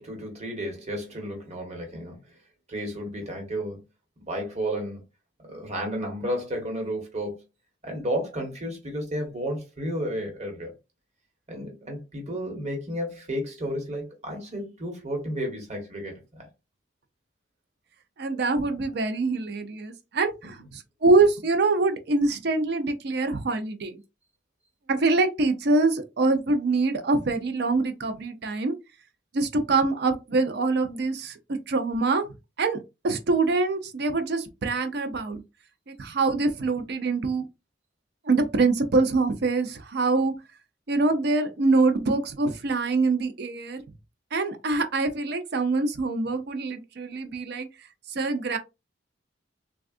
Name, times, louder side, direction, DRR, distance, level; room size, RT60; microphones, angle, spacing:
voice 1, 0.0-2.4 2.7-3.8 4.3-5.0 5.4-7.4 7.8-10.7 11.5-16.5, equal, 35° right, 1.2 m, -32 dB
voice 2, 18.2-24.0 24.9-28.7 29.3-32.3 32.6-32.8 33.0-35.4 35.9-37.5 38.2-40.3 40.9-43.8 44.3-47.7 48.1-48.6, right 3 dB, 60° right, 0.5 m, -24 dB
3.4 x 2.3 x 2.4 m
head